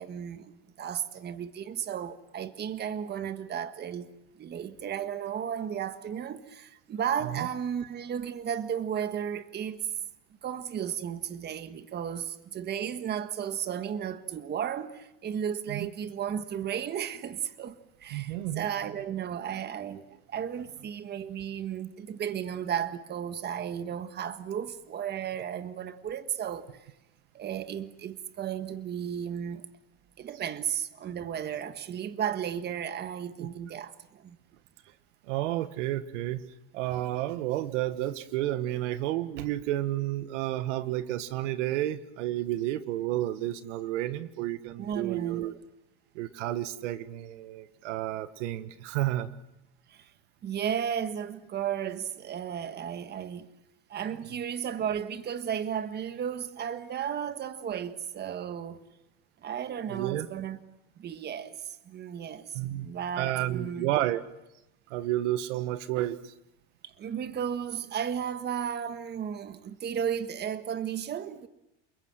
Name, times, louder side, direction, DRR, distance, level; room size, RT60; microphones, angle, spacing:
voice 1, 0.0-4.1 4.4-9.8 10.4-26.8 27.3-29.7 30.2-34.4 44.8-45.5 49.9-50.1 50.4-53.5 53.9-58.9 59.4-60.6 61.0-63.9 66.8-71.5, right 8 dB, 30° right, 1.5 m, -34 dB
voice 2, 18.1-18.7 33.4-33.5 35.2-36.4 36.7-45.6 46.1-49.3 59.9-60.3 62.5-62.9 63.2-64.2 64.9-66.3, right 14 dB, 90° right, 1.6 m, -31 dB
29.5 x 21.5 x 7.7 m
supercardioid pair, 145°, 35 cm